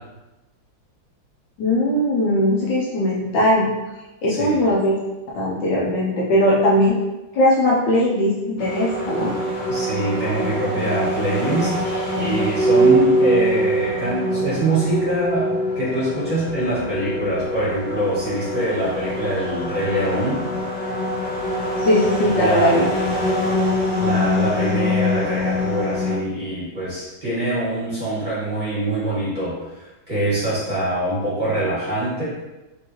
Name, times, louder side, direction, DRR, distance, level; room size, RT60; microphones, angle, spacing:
voice 1, 1.6-3.7 4.2-5.0 5.3-7.0 7.3-9.3 21.8-23.2, left 1 dB, 70° left, -5 dB, 1.3 m, -19 dB
voice 2, 4.3-4.6 9.7-11.7 12.2-15.5 15.7-20.4 22.3-22.8 24.0-32.2, right 1 dB, 25° right, -10 dB, 1.5 m, -24 dB
sound 1, 8.6-26.2, equal, 50° left, 1.5 m, -23 dB
3.9 x 3.5 x 3.0 m, 1.1 s
omnidirectional pair, 2.2 m